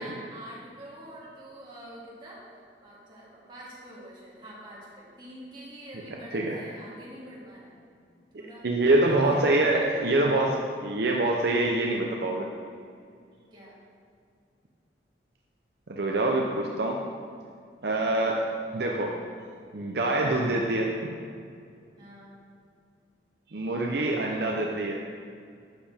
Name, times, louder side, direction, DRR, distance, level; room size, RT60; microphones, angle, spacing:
voice 1, 0.0-2.4 2.8-7.8 8.4-8.7 9.1-9.4 13.5-13.8 22.0-22.4 23.7-24.1, right 1 dB, 25° right, -7 dB, 2.4 m, -46 dB
voice 2, 8.6-12.5 15.9-17.0 17.8-18.4 18.7-19.2 19.7-20.9 23.5-25.0, right 2 dB, 60° right, 0 dB, 0.7 m, -25 dB
12.0 x 7.4 x 3.6 m, 2.3 s
head